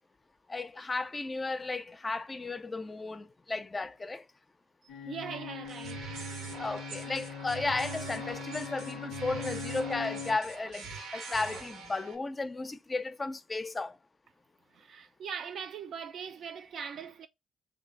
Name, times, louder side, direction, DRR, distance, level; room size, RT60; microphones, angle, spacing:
voice 1, 0.5-4.2 6.6-14.0, left 3 dB, 30° left, 0.4 m, -34 dB
sound 1, 4.9-10.4, left 7 dB, 85° left, 0.5 m, -41 dB
voice 2, 5.1-6.0 14.7-17.3, right 7 dB, 65° right, 0.4 m, -40 dB
sound 2, 5.6-12.2, right 5 dB, 85° right, 0.8 m, -43 dB
3.1 x 2.7 x 3.7 m
cardioid pair, 75°, 0 cm